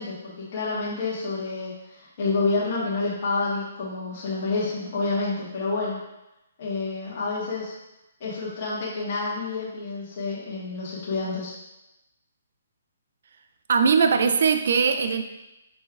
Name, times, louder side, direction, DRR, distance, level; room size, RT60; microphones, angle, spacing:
voice 1, 0.0-6.0 6.6-7.7 8.2-11.5, left 3 dB, 45° left, -7 dB, 1.4 m, -28 dB
voice 2, 13.7-15.2, right 5 dB, 65° right, 7 dB, 0.4 m, -20 dB
5.2 x 3.2 x 2.4 m, 0.95 s
hypercardioid pair, 150°, 0 cm